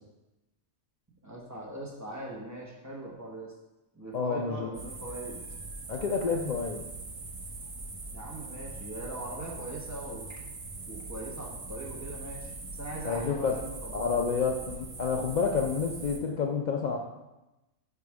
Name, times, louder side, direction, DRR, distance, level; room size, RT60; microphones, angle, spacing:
voice 1, 1.2-3.5 3.9-5.8 8.1-10.3 10.9-14.4, right 1 dB, 15° right, -5 dB, 1.1 m, -41 dB
voice 2, 4.1-4.7 5.9-6.8 13.0-13.5 13.9-17.0, left 5 dB, 85° left, 1 dB, 0.4 m, -29 dB
sound 1, 4.7-16.2, right 3 dB, 35° right, 0.5 m, -42 dB
5.0 x 4.8 x 4.7 m, 1.0 s
omnidirectional pair, 1.4 m